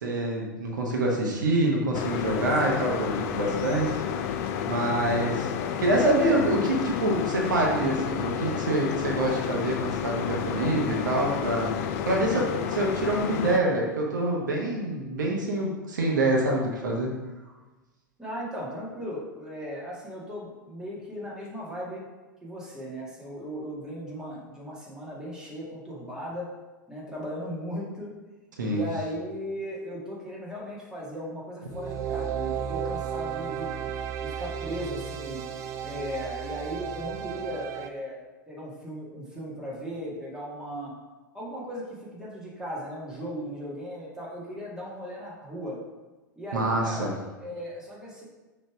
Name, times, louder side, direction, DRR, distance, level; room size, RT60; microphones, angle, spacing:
voice 1, 0.0-4.0 4.2-5.5 5.8-17.2 28.6-28.8 46.5-47.1, right 1 dB, 65° right, -1 dB, 1.0 m, -26 dB
sound 1, 1.9-13.6, left 8 dB, 45° left, 0.4 m, -31 dB
voice 2, 18.2-22.0 22.4-26.5 26.9-28.1 28.6-33.9 34.2-35.4 35.8-38.2 38.5-40.9 41.3-41.9 42.1-45.8 46.4-48.2, equal, 5° right, -6 dB, 1.8 m, -37 dB
sound 2, 31.7-37.9, right 8 dB, 30° right, 0.4 m, -33 dB
6.4 x 3.2 x 4.7 m, 1.2 s
figure-of-eight pair, 90°, 11 cm